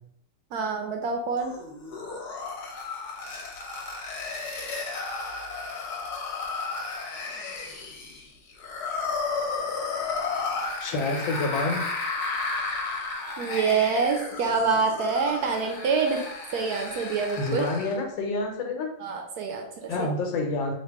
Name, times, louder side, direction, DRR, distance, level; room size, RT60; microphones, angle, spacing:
voice 1, 0.5-1.5 13.4-16.2 16.5-17.6 19.0-20.1, right 5 dB, 70° right, 3 dB, 1.0 m, -26 dB
sound 1, 1.4-18.0, left 4 dB, 65° left, 1.3 m, -33 dB
voice 2, 10.8-11.9 17.4-18.9 19.9-20.7, left 3 dB, 90° left, 3 dB, 1.5 m, -28 dB
3.6 x 2.6 x 4.6 m, 0.73 s
omnidirectional pair, 2.0 m